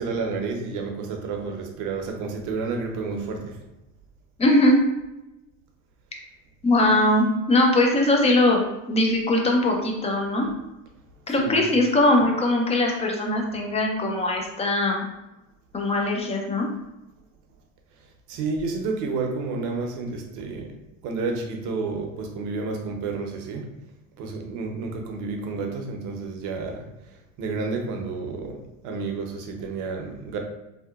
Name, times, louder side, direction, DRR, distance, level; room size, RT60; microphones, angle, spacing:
voice 1, 0.0-3.6 11.4-11.6 18.3-20.8 21.0-23.7 24.2-30.4, right 4 dB, 50° right, 3 dB, 0.7 m, -30 dB
voice 2, 4.4-4.8 6.6-10.5 11.3-15.1 15.7-16.7, left 1 dB, 15° left, 1 dB, 0.4 m, -21 dB
2.7 x 2.1 x 2.2 m, 0.95 s
hypercardioid pair, 90°, 39 cm